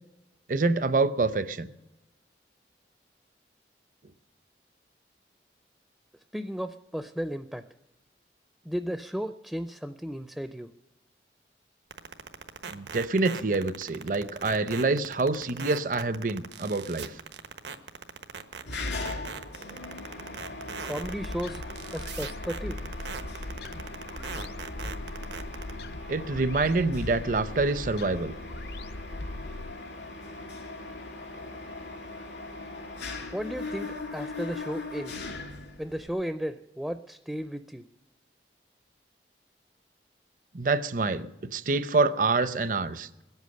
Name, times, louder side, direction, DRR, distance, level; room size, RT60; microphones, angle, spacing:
voice 1, 0.5-1.7 12.7-17.2 26.1-28.3 40.5-43.2, right 3 dB, 50° right, 14 dB, 0.7 m, -26 dB
voice 2, 6.3-7.6 8.7-10.7 20.8-21.6 21.9-22.8 33.3-35.3 35.8-37.8, equal, ahead, 9 dB, 0.4 m, -34 dB
sound 1, 11.9-25.7, right 5 dB, 85° right, 1.2 m, -39 dB
Mechanisms, 18.7-36.1, left 2 dB, 85° left, 2.4 m, -40 dB
sound 2, 21.0-29.8, left 2 dB, 65° left, 0.7 m, -40 dB
21.0 x 8.2 x 6.7 m, 1.0 s
head